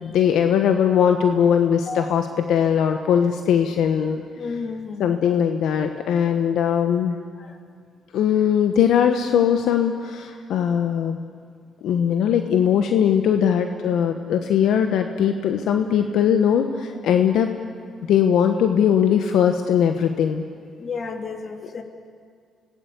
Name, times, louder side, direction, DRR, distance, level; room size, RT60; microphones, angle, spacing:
voice 1, 0.0-4.2 5.0-7.2 8.1-11.2 11.8-17.5 18.1-20.4, left 8 dB, 80° left, 6 dB, 1.3 m, -20 dB
voice 2, 4.4-5.2 7.4-7.6 19.4-19.5 20.8-21.8, left 4 dB, 45° left, 5 dB, 2.8 m, -32 dB
26.0 x 19.0 x 8.4 m, 2.1 s
cardioid pair, 90°, 0 cm